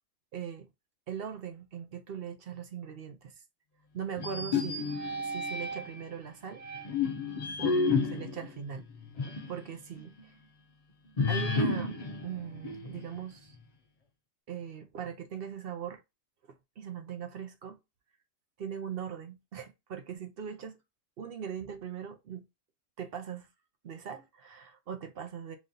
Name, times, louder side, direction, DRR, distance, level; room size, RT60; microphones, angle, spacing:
voice 1, 0.3-0.7 1.1-3.3 3.9-4.9 5.2-6.6 7.6-8.9 9.5-10.3 11.3-13.6 14.5-16.0 16.4-17.8 18.6-20.8 21.2-22.5 23.0-23.5 23.8-25.6, right 8 dB, 55° right, 0.7 m, -40 dB
sound 1, 4.2-6.0 6.6-9.6 10.0-10.1 11.2-13.2, left 4 dB, 70° left, 0.3 m, -31 dB
3.1 x 2.7 x 3.7 m
omnidirectional pair, 1.4 m